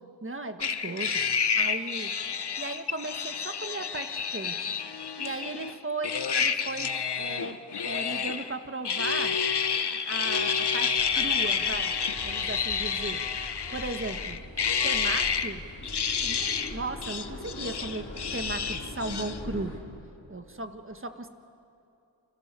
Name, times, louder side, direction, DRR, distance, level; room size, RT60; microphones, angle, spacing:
voice 1, 0.2-1.2 1.5-2.1 2.6-4.7 5.2-7.6 7.8-9.3 10.1-11.9 12.2-13.2 13.7-14.4 14.8-15.6 16.2-16.4 16.7-19.7 20.3-21.3, right 2 dB, 25° right, 7 dB, 1.5 m, -36 dB
sound 1, 0.6-5.7 6.0-8.5 8.8-15.5 15.8-16.8 17.0-19.4, left 6 dB, 55° left, 1.1 m, -29 dB
sound 2, 11.0-19.8, left 1 dB, 30° left, 4.9 m, -42 dB
29.5 x 26.0 x 6.9 m, 2.7 s
wide cardioid pair, 90°, 47 cm